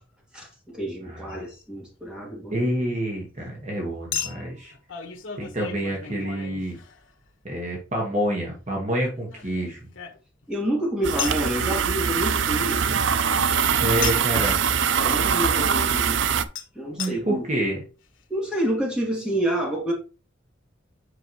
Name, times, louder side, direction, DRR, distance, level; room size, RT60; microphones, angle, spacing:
voice 1, 0.3-2.7 10.5-12.8 15.0-16.2 16.7-17.4 18.3-19.9, right 1 dB, 5° right, -3 dB, 2.8 m, -28 dB
voice 2, 1.0-1.5 2.5-4.7 5.4-6.8 7.4-9.8 13.6-14.6 16.9-17.8, right 1 dB, 35° right, -1 dB, 1.5 m, -28 dB
Chink clink, 1.3-1.4 4.1-7.3 8.9-10.5 11.2-11.5 14.0-14.4 16.6-16.7 17.0-17.1 17.8-17.9 18.0-18.1, left 8 dB, 85° left, 1.4 m, -35 dB
sound 1, 11.0-16.4, right 7 dB, 75° right, 0.5 m, -23 dB
8.0 x 5.6 x 3.1 m, 0.34 s
head